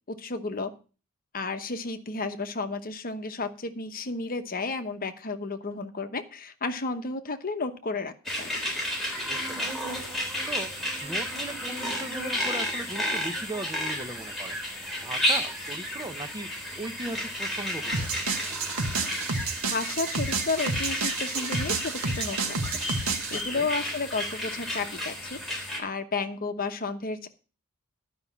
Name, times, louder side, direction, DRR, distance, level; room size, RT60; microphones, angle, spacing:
voice 1, 0.1-0.7 1.3-8.6 19.7-22.6 22.9-27.3, left 3 dB, 45° left, 8 dB, 1.0 m, -32 dB
sound 1, 8.3-25.8, left 1 dB, ahead, 3.5 m, -32 dB
voice 2, 9.3-9.7 10.5-10.7 11.0-14.6 15.0-18.1 23.3-23.7, right 1 dB, 20° right, 8 dB, 0.8 m, -38 dB
sound 2, 17.9-23.4, right 4 dB, 85° right, 1.5 m, -30 dB
12.0 x 5.5 x 7.1 m, 0.35 s
head